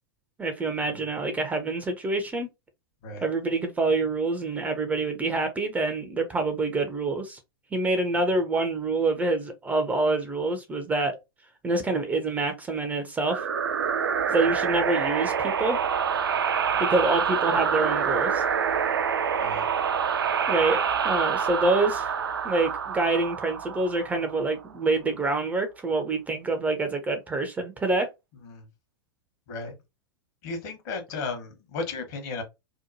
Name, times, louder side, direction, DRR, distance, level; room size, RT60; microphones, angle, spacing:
voice 1, 0.4-2.5 3.2-7.4 7.7-11.2 11.6-13.4 14.3-15.8 16.8-18.4 20.5-22.1 22.4-28.1, right 2 dB, 10° right, 0.4 m, -26 dB
sound 1, 13.3-24.6, right 7 dB, 70° right, 0.4 m, -26 dB
voice 2, 19.3-19.7 28.4-28.6 29.5-29.7 30.4-32.4, left 3 dB, 50° left, 1.1 m, -35 dB
2.8 x 2.1 x 2.6 m
figure-of-eight pair, 95°, 12 cm